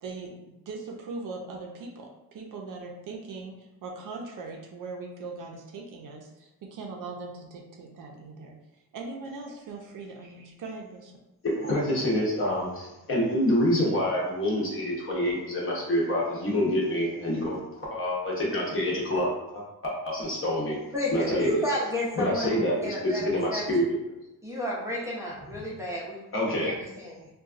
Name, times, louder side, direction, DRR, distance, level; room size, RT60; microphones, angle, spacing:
voice 1, 0.0-8.6 8.9-11.1, right 3 dB, 55° right, 0 dB, 0.5 m, -40 dB
voice 2, 11.4-20.8 21.1-21.6 22.2-24.0 26.3-26.8, equal, 35° left, -4 dB, 0.8 m, -27 dB
voice 3, 20.9-23.7 24.4-26.2 26.5-27.3, left 1 dB, 10° right, -7 dB, 0.5 m, -32 dB
3.9 x 2.2 x 2.4 m, 0.95 s
cardioid pair, 160°, 38 cm